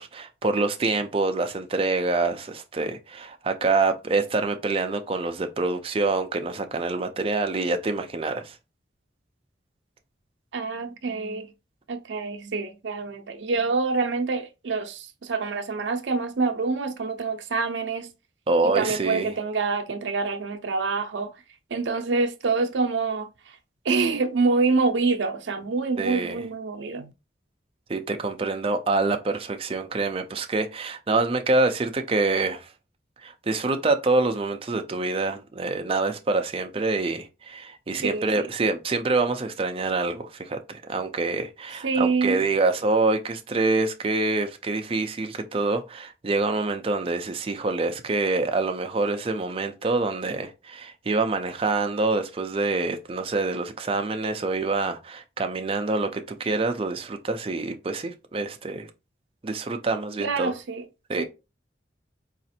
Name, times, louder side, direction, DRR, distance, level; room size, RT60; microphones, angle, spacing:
voice 1, 0.0-8.6 18.5-19.3 26.0-26.5 27.9-32.7 33.2-58.9 59.4-60.5 61.1-61.2, right 3 dB, 30° right, 0.4 m, -26 dB
voice 2, 10.5-11.5 11.9-18.1 18.6-21.3 21.7-23.3 23.8-27.1 38.0-38.5 41.8-42.4 60.2-60.8 61.2-61.3, right 4 dB, 80° right, 0.5 m, -26 dB
4.1 x 2.5 x 2.7 m
head